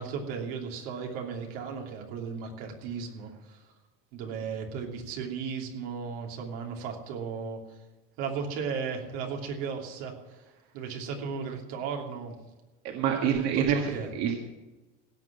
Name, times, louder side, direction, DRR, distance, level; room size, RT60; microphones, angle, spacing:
voice 1, 0.0-3.6 4.1-7.6 8.2-10.1 10.7-12.3 13.2-14.1, right 5 dB, 85° right, 1 dB, 3.0 m, -35 dB
voice 2, 12.8-13.7 14.2-14.4, right 9 dB, 60° right, 2 dB, 1.8 m, -26 dB
16.5 x 6.1 x 8.7 m, 1.1 s
cardioid pair, 145°, 30 cm